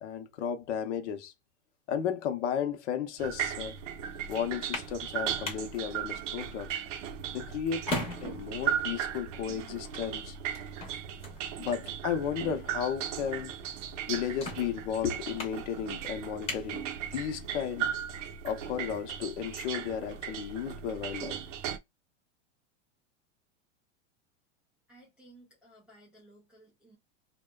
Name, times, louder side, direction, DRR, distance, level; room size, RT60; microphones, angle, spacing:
voice 1, 0.0-1.3 1.9-3.8 4.3-6.8 7.3-7.9 8.2-10.4 11.6-13.5 14.1-17.9 18.4-21.4, left 8 dB, 65° left, 0.7 m, -34 dB
sound 1, 3.2-21.8, right 9 dB, 75° right, 0.6 m, -37 dB
sound 2, 4.4-17.5, left 2 dB, 15° left, 0.8 m, -43 dB
voice 2, 24.9-27.0, right 1 dB, ahead, 0.3 m, -57 dB
2.7 x 2.2 x 2.2 m
supercardioid pair, 155°, 38 cm